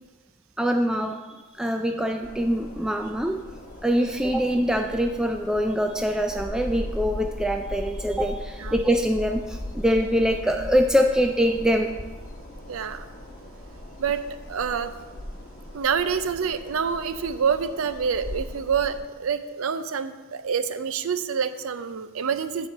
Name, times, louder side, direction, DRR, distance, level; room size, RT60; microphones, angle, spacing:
voice 1, 0.6-1.2 1.6-3.4 3.8-11.9, equal, 5° right, 4 dB, 0.3 m, -24 dB
sound 1, 2.2-19.0, left 1 dB, 40° left, 1.4 m, -39 dB
voice 2, 12.7-13.0 14.0-14.2 14.5-14.9 15.7-22.7, right 6 dB, 80° right, 11 dB, 0.5 m, -27 dB
9.0 x 4.3 x 7.1 m, 1.3 s
head